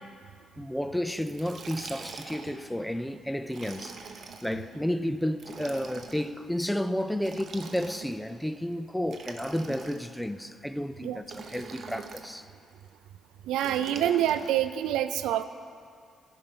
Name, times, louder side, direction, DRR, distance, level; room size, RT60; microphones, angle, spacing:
voice 1, 0.6-4.1 4.4-12.5, equal, 5° left, 0.4 m, -32 dB
Liquid, 1.2-2.6 3.5-4.5 5.3-6.3 7.2-8.3 9.0-10.2 11.2-12.3 13.6-14.6, right 5 dB, 50° right, 0.8 m, -43 dB
voice 2, 13.5-15.4, right 11 dB, 90° right, 0.4 m, -26 dB
14.0 x 5.4 x 5.6 m
cardioid pair, 90°, 0 cm